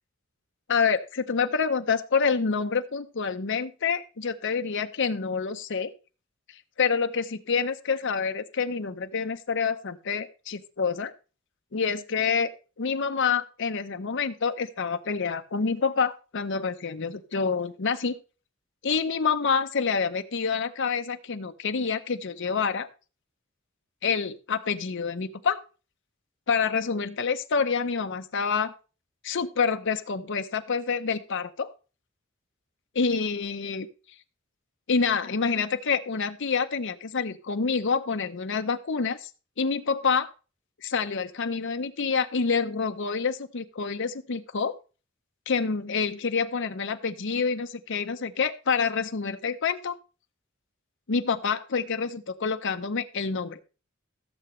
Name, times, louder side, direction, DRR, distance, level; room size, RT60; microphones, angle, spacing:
voice 1, 0.7-5.9 6.8-11.1 11.7-12.5 12.8-18.2 18.8-22.9 24.0-25.6 26.5-28.7 29.2-31.7 33.0-33.9 34.9-39.3 39.6-40.3 40.8-44.7 45.5-50.0 51.1-53.6, left 5 dB, 65° left, 8 dB, 0.8 m, -27 dB
15.5 x 6.9 x 3.2 m, 0.34 s
head